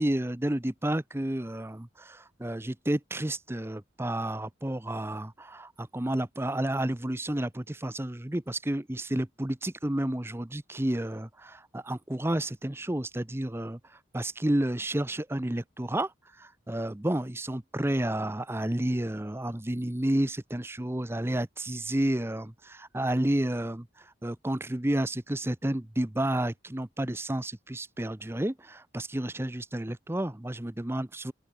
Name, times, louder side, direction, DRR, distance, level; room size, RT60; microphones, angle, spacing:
voice 1, 0.0-31.3, right 1 dB, 10° right, 0.7 m, -31 dB
open air
head